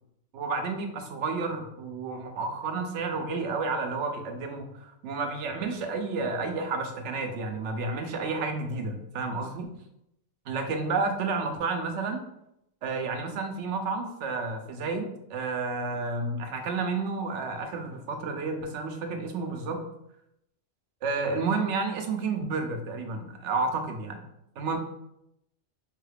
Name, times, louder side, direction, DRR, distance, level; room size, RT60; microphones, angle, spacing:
voice 1, 0.3-9.7 10.5-12.2 12.8-19.8 21.0-24.2 24.6-24.8, right 4 dB, 90° right, 5 dB, 0.9 m, -31 dB
5.6 x 2.3 x 3.3 m, 0.81 s
omnidirectional pair, 1.2 m